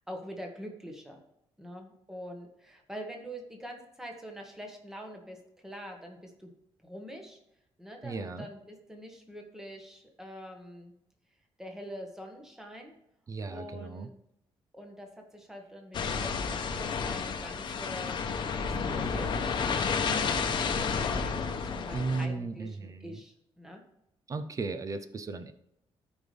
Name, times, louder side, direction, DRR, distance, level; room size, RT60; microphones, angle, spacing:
voice 1, 0.1-1.2 1.6-5.4 5.6-6.5 6.8-7.4 7.8-10.9 11.6-12.9 13.5-14.1 14.7-18.2 18.5-23.8, equal, 5° right, 2 dB, 1.4 m, -45 dB
voice 2, 8.0-8.5 13.3-14.1 21.9-23.0 24.3-25.5, right 3 dB, 35° right, 11 dB, 0.6 m, -35 dB
sound 1, 15.9-22.3, left 5 dB, 50° left, 0.9 m, -31 dB
13.5 x 5.3 x 3.4 m, 0.80 s
cardioid pair, 155°, 10 cm